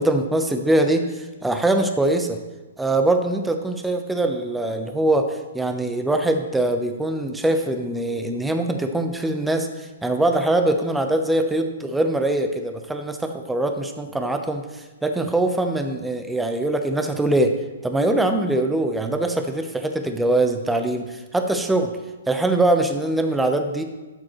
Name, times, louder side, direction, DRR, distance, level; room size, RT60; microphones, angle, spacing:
voice 1, 0.0-2.4 2.8-17.6 17.8-21.9 22.3-23.8, right 2 dB, 5° right, 5 dB, 0.8 m, -22 dB
13.0 x 7.5 x 3.1 m, 1.2 s
hypercardioid pair, 135°, 0 cm